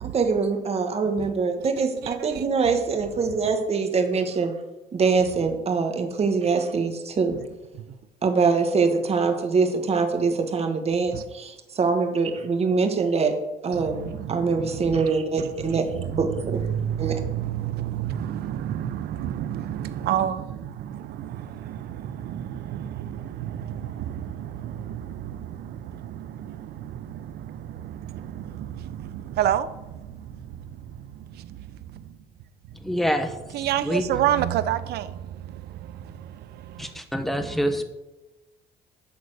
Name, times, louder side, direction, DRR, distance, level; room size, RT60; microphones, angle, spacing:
voice 1, 0.0-4.5 4.9-7.4 8.2-13.3 13.6-16.6 17.0-17.1, right 4 dB, 35° right, 6 dB, 1.6 m, -24 dB
voice 2, 32.8-33.3 33.8-34.0 36.8-37.8, equal, ahead, 7 dB, 1.1 m, -25 dB
voice 3, 33.5-35.0, right 11 dB, 70° right, 14 dB, 0.7 m, -23 dB
11.5 x 4.0 x 7.9 m, 1.0 s
cardioid pair, 110°, 17 cm